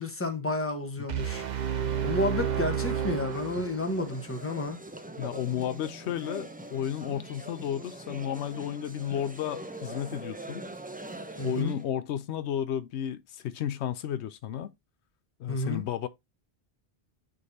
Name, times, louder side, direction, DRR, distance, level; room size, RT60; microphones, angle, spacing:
voice 1, 0.0-1.4 2.0-4.8 11.4-11.7 15.5-15.8, left 2 dB, 15° left, 1.1 m, -31 dB
sound 1, 1.1-4.1, right 8 dB, 45° right, 0.8 m, -31 dB
sound 2, 2.7-11.9, right 1 dB, 10° right, 0.5 m, -43 dB
voice 2, 5.2-10.6 11.4-14.7 15.4-16.1, left 10 dB, 85° left, 0.9 m, -33 dB
9.4 x 3.9 x 2.7 m
omnidirectional pair, 1.1 m